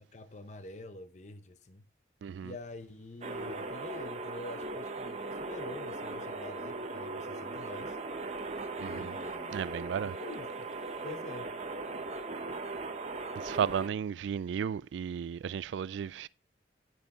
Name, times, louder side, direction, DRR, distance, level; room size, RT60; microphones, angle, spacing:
voice 1, 0.0-1.9 2.4-8.0 8.9-9.6 10.0-10.7 11.0-11.6, left 2 dB, 40° left, 0.7 m, -46 dB
voice 2, 2.2-2.5 8.8-9.2 9.5-10.2 13.4-16.3, right 7 dB, 80° right, 0.3 m, -34 dB
sound 1, 3.2-13.9, right 3 dB, 35° right, 0.8 m, -39 dB
9.6 x 9.3 x 2.5 m
head